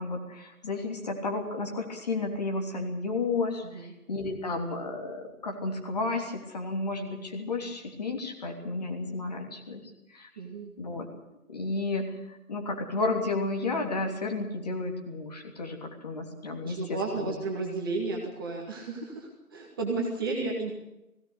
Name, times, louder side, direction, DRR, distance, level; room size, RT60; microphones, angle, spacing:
voice 1, 0.0-10.3 10.8-11.1 11.5-17.3, left 3 dB, 25° left, 3 dB, 3.3 m, -32 dB
voice 2, 10.4-10.7 16.6-20.7, right 3 dB, 15° right, -1 dB, 2.2 m, -33 dB
19.0 x 17.5 x 8.2 m, 0.91 s
figure-of-eight pair, 160°, 45 cm